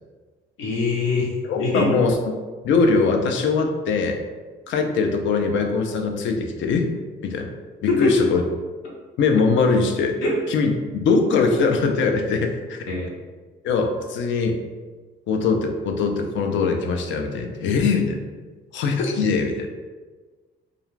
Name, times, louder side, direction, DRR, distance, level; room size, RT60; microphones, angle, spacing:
voice 1, 0.6-1.3 1.6-1.9 7.9-8.3 10.2-10.4 12.9-13.1, left 3 dB, 90° left, -4 dB, 0.9 m, -22 dB
voice 2, 1.4-2.2 2.6-4.2 4.7-6.9 7.2-7.5 8.0-8.4 9.2-10.2 10.5-12.8 13.6-14.6 15.3-18.2 18.7-19.7, left 4 dB, 70° left, 4 dB, 0.4 m, -21 dB
2.4 x 2.3 x 3.1 m, 1.4 s
cardioid pair, 90°, 20 cm